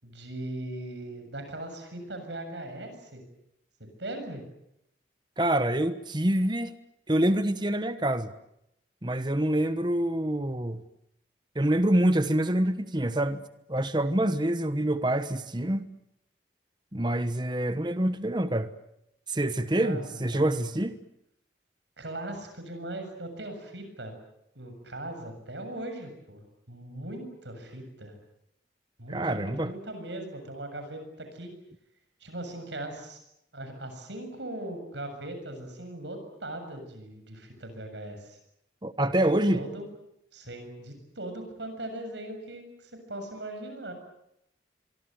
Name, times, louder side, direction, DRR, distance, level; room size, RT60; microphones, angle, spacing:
voice 1, 0.0-3.2 3.8-4.4 19.8-20.5 22.0-24.1 24.6-28.1 29.0-31.5 32.2-33.2 33.5-38.4 39.2-39.8 40.3-43.9, right 1 dB, 75° right, 7 dB, 7.2 m, -39 dB
voice 2, 5.4-6.7 7.1-8.3 9.0-10.8 11.5-13.4 13.7-15.8 16.9-18.7 19.3-21.0 29.1-29.7 38.8-39.6, right 1 dB, 25° right, 11 dB, 1.1 m, -26 dB
25.0 x 24.5 x 7.9 m, 0.80 s
head